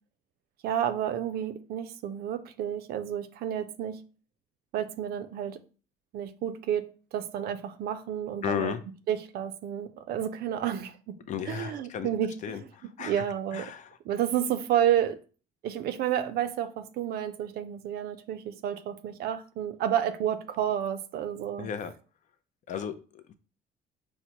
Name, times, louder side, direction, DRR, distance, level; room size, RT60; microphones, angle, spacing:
voice 1, 0.6-4.0 4.7-5.6 6.1-8.7 9.1-11.1 11.5-12.6 13.0-13.7 14.1-15.2 15.6-21.7, right 10 dB, 65° right, 0.4 m, -30 dB
voice 2, 8.4-8.8 11.3-12.1 12.4-13.3 13.5-14.0 21.6-21.9 22.7-23.3, left 8 dB, 45° left, 0.4 m, -34 dB
4.4 x 2.0 x 2.8 m
cardioid pair, 110°, 17 cm